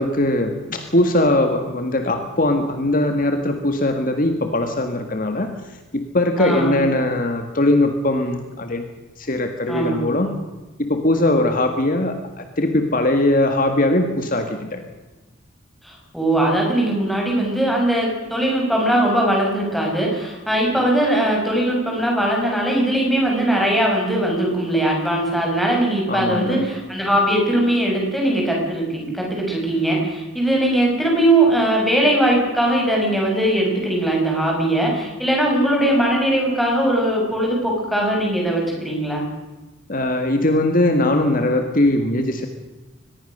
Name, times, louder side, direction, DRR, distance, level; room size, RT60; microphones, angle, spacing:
voice 1, 0.0-8.8 9.2-10.3 10.8-14.8 26.1-26.7 39.9-42.5, left 1 dB, 45° left, 6 dB, 1.7 m, -20 dB
voice 2, 6.4-6.8 9.7-10.3 15.8-39.2, right 1 dB, ahead, -2 dB, 7.4 m, -20 dB
23.5 x 21.0 x 6.7 m, 1.2 s
head